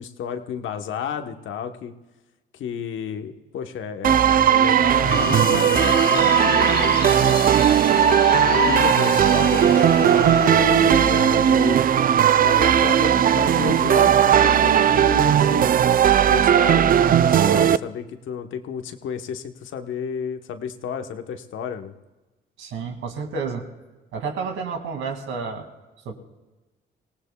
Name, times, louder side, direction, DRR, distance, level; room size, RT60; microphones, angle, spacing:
voice 1, 0.0-1.9 2.5-7.5 8.4-11.8 12.4-15.7 16.3-21.9, left 8 dB, 75° left, 7 dB, 1.1 m, -32 dB
sound 1, 4.0-17.8, right 9 dB, 45° right, 0.4 m, -17 dB
sound 2, 5.1-11.1, left 9 dB, 55° left, 0.7 m, -28 dB
voice 2, 22.6-23.7 24.1-25.7 26.1-26.2, right 5 dB, 80° right, 4 dB, 2.3 m, -30 dB
25.0 x 18.0 x 2.3 m, 1.2 s
cardioid pair, 90°, 20 cm